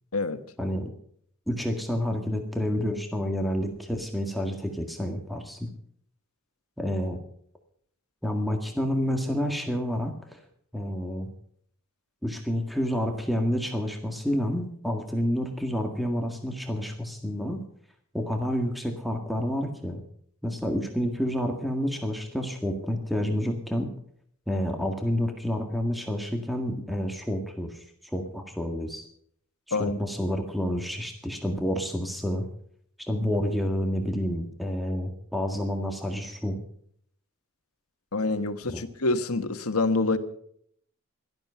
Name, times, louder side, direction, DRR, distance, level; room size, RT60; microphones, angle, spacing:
voice 1, 0.6-0.9 1.5-5.7 6.8-7.2 8.2-10.4 10.7-11.3 12.2-17.6 18.1-20.0 20.4-23.9 24.5-29.0 29.7-32.5 33.0-36.6 38.7-38.8, equal, ahead, 4 dB, 1.8 m, -29 dB
voice 2, 38.1-40.2, left 3 dB, 85° left, 9 dB, 1.5 m, -26 dB
17.0 x 12.5 x 5.7 m, 0.64 s
head